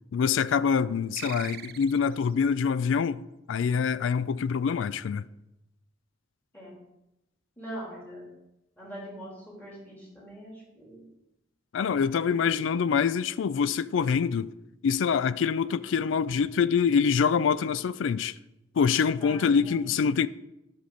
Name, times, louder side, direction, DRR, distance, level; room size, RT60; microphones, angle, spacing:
voice 1, 0.1-3.2 3.5-5.2 11.7-14.5 14.8-18.3 18.8-20.3, left 6 dB, 70° left, 0.3 m, -25 dB
sound 1, 1.2-2.3, right 12 dB, 50° right, 0.3 m, -41 dB
voice 2, 7.6-8.2 8.8-11.0 12.0-12.9 19.2-19.9, right 1 dB, 10° left, 3.1 m, -43 dB
11.5 x 5.8 x 3.9 m
head